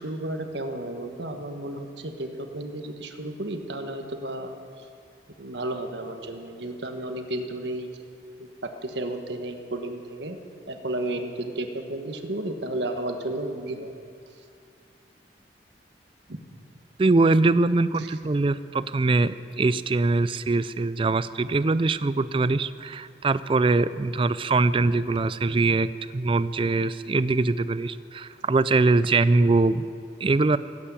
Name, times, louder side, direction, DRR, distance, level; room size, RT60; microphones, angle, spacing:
voice 1, 0.0-4.5 4.8-4.9 5.4-7.9 8.4-10.4 10.7-13.9 16.3-16.4 18.0-18.1, right 1 dB, 75° right, 5 dB, 1.4 m, -33 dB
voice 2, 17.0-29.8 30.2-30.6, right 3 dB, 30° right, 15 dB, 0.4 m, -22 dB
16.0 x 8.6 x 8.5 m, 2.4 s
head